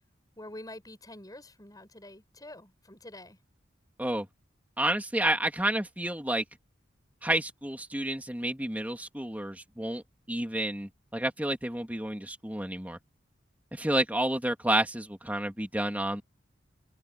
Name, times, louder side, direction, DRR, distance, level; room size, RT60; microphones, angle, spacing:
voice 1, 0.4-3.4, left 1 dB, 20° left, 8.0 m, -46 dB
voice 2, 4.8-6.4 7.2-10.0 10.3-13.0 13.7-16.2, right 1 dB, 10° right, 2.9 m, -30 dB
head